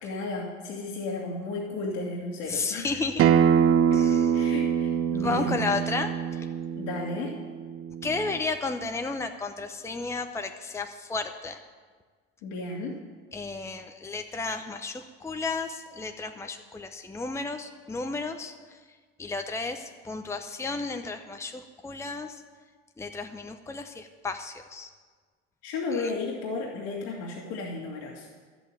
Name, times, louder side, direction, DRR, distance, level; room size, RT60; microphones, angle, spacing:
voice 1, 0.0-2.9 3.9-4.0 4.3-5.6 6.8-7.3 12.4-12.9 25.6-28.3, left 3 dB, 65° left, -2 dB, 2.3 m, -33 dB
voice 2, 2.5-3.3 3.9-4.5 5.2-6.5 8.0-11.6 13.3-22.4 23.0-24.9 25.9-26.1, left 3 dB, 10° left, 5 dB, 0.9 m, -33 dB
Acoustic guitar, 3.2-8.4, right 8 dB, 45° right, 0.7 m, -24 dB
11.5 x 8.1 x 9.0 m, 1.5 s
hypercardioid pair, 85°, 33 cm